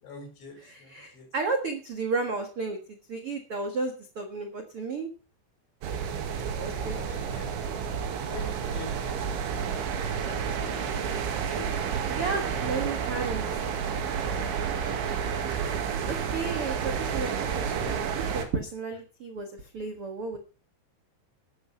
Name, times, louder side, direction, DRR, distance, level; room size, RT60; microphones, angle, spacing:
voice 1, 0.0-1.3 6.7-7.7 8.3-9.1 10.0-10.8 11.5-11.7 14.3-15.1 15.5-15.9, left 4 dB, 80° left, 3 dB, 7.6 m, -46 dB
voice 2, 0.6-5.1 6.5-7.0 12.1-13.4 16.1-20.4, right 4 dB, 65° right, 5 dB, 1.4 m, -33 dB
sound 1, 5.8-18.5, right 7 dB, 85° right, 4.5 m, -30 dB
13.0 x 11.0 x 5.7 m, 0.36 s
omnidirectional pair, 5.3 m